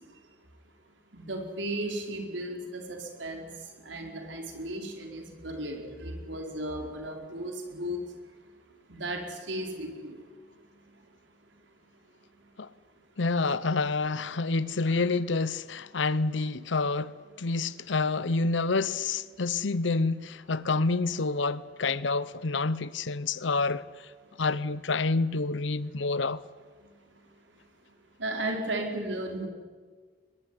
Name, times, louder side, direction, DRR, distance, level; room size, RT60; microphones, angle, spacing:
voice 1, 1.1-3.5 3.8-8.0 8.9-10.2 28.2-29.5, right 1 dB, 90° right, 4.9 m, -35 dB
voice 2, 13.2-23.9 24.4-26.4, left 3 dB, 85° left, 0.8 m, -28 dB
22.0 x 21.5 x 9.5 m
head